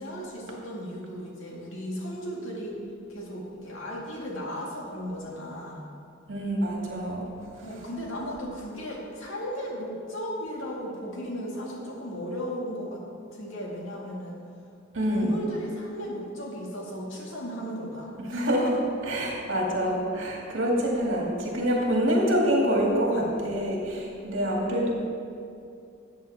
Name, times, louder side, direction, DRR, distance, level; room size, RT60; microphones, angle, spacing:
voice 1, 0.0-2.8 3.1-5.8 7.6-13.0 13.3-14.4 15.1-18.1, equal, 75° left, -3 dB, 2.1 m, -35 dB
voice 2, 6.3-7.3 7.6-7.7 14.9-15.3 18.3-24.9, equal, 70° right, -2 dB, 2.3 m, -26 dB
13.5 x 8.3 x 3.6 m, 2.5 s
head